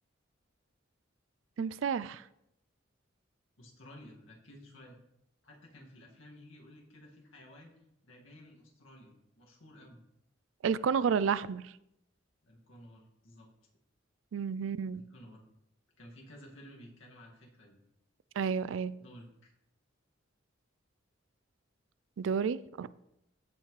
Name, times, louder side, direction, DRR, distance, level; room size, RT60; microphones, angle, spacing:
voice 1, 1.6-2.2 10.6-11.7 14.3-15.0 18.4-18.9 22.2-23.0, right 6 dB, 80° right, 18 dB, 0.4 m, -31 dB
voice 2, 3.6-5.0 5.4-7.7 8.0-10.0 12.4-13.5 14.9-15.4 16.0-17.8 19.0-19.5, left 1 dB, 85° left, -1 dB, 2.1 m, -54 dB
15.0 x 5.7 x 3.2 m, 0.81 s
head